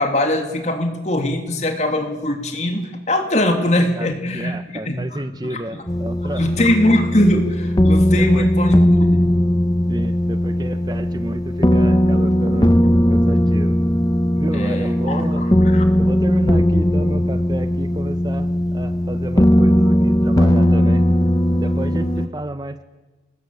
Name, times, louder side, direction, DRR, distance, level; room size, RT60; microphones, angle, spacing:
voice 1, 0.0-4.6 4.9-5.0 5.4-5.8 6.4-9.3 14.5-15.8, left 1 dB, 40° left, 4 dB, 3.1 m, -21 dB
voice 2, 4.3-6.7 8.1-8.5 9.9-12.8 13.1-13.8 14.4-15.5 16.0-21.1 21.5-22.8, right 1 dB, 25° right, 11 dB, 0.9 m, -30 dB
sound 1, 5.9-22.3, equal, 20° left, 1.0 m, -17 dB
25.5 x 20.5 x 8.5 m, 1.2 s
head